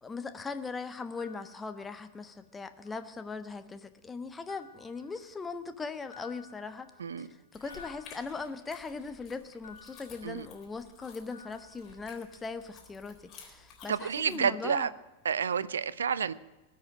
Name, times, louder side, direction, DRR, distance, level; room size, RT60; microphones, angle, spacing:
voice 1, 0.0-6.9 7.2-14.9, left 4 dB, 15° left, 10 dB, 1.1 m, -40 dB
sound 1, 1.2-2.5 2.9-3.6 4.5-5.7 6.1-9.0 9.6-11.0 11.3-12.6, left 6 dB, 70° left, 2.3 m, -56 dB
sound 2, 7.5-14.4, left 5 dB, 35° left, 3.9 m, -54 dB
voice 2, 13.9-14.9 15.2-16.3, right 7 dB, 70° right, 19 dB, 0.6 m, -30 dB
19.5 x 6.7 x 9.2 m, 1.1 s
figure-of-eight pair, 90°, 0 cm